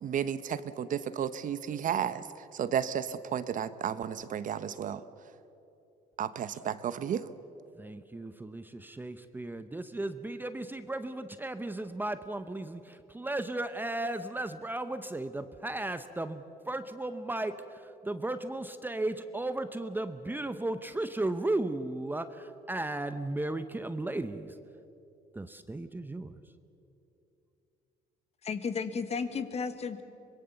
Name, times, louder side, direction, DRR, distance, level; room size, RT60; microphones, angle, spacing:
voice 1, 0.0-5.0 6.2-7.3, right 8 dB, 50° right, 13 dB, 0.9 m, -33 dB
voice 2, 7.8-24.5 25.3-26.4, right 2 dB, 10° right, 10 dB, 0.8 m, -35 dB
voice 3, 28.4-30.0, left 5 dB, 40° left, 10 dB, 1.6 m, -33 dB
24.5 x 21.5 x 7.1 m, 2.9 s
cardioid pair, 110°, 17 cm